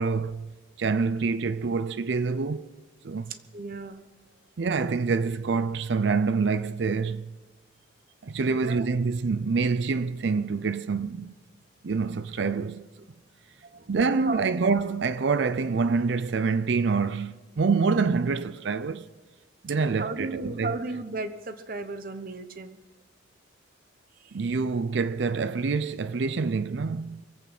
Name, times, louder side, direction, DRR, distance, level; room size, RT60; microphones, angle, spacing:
voice 1, 0.0-2.7 3.0-3.3 4.6-7.3 8.2-11.4 11.8-12.9 13.9-19.1 19.6-20.7 24.3-27.2, right 4 dB, 65° right, 0.5 m, -26 dB
voice 2, 3.3-4.0 8.5-8.9 13.6-14.4 20.0-22.8 24.2-24.5, right 2 dB, 45° right, 1.0 m, -35 dB
24.0 x 8.5 x 6.0 m
head